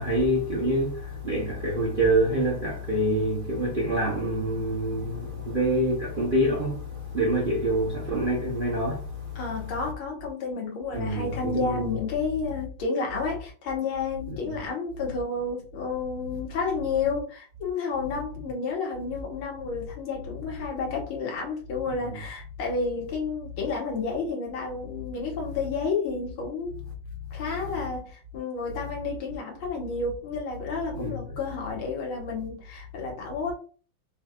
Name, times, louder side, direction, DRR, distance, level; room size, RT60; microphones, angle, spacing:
voice 1, 0.0-9.4 10.9-11.8 30.9-31.2, right 1 dB, 85° right, 0.4 m, -26 dB
voice 2, 9.4-26.8 27.3-33.5, left 4 dB, 80° left, 2.1 m, -31 dB
5.5 x 2.9 x 2.4 m
omnidirectional pair, 2.3 m